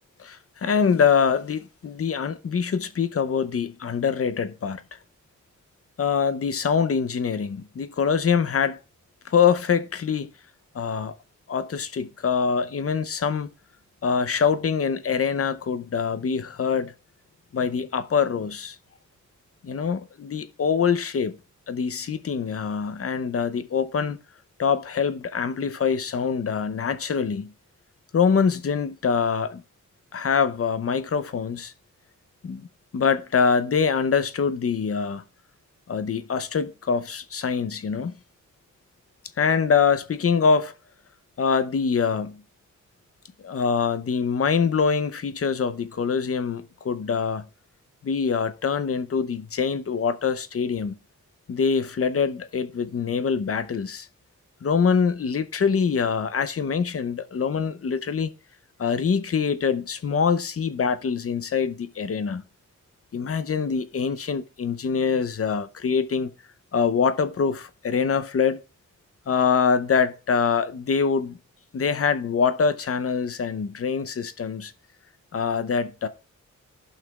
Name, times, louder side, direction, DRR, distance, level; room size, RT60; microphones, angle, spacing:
voice 1, 0.2-5.0 6.0-8.8 9.2-10.3 10.7-11.1 11.5-13.5 14.0-16.9 17.5-18.8 19.6-21.4 21.7-24.2 24.6-27.5 28.1-29.6 30.1-31.7 32.4-32.7 32.9-35.2 35.9-38.1 39.4-40.7 41.4-42.4 43.4-47.4 48.0-51.0 51.5-54.1 54.6-58.3 58.8-62.4 63.1-66.3 66.7-68.6 69.3-71.4 71.7-74.7 75.3-76.1, left 6 dB, 50° left, 0.7 m, -24 dB
15.0 x 5.7 x 2.3 m
wide cardioid pair, 95°, 31 cm